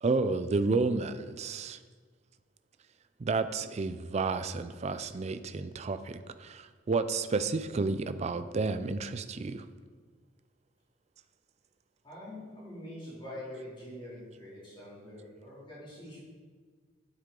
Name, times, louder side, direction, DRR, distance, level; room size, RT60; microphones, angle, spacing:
voice 1, 0.0-1.8 3.2-9.6, right 3 dB, 35° right, 11 dB, 0.4 m, -31 dB
voice 2, 12.0-16.2, left 1 dB, 25° left, -6 dB, 2.8 m, -45 dB
9.5 x 8.3 x 3.8 m, 1.6 s
head